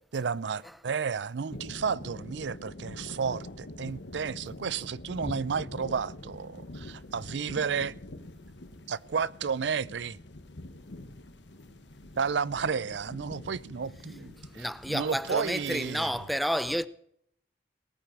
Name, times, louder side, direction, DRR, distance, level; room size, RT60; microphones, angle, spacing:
voice 1, 0.0-7.9 8.9-10.2 12.2-16.1, right 6 dB, 85° right, 0.5 m, -32 dB
sound 1, 1.5-16.3, left 1 dB, 90° left, 1.3 m, -45 dB
voice 2, 14.4-16.9, equal, ahead, 0.5 m, -30 dB
18.5 x 9.1 x 6.0 m
head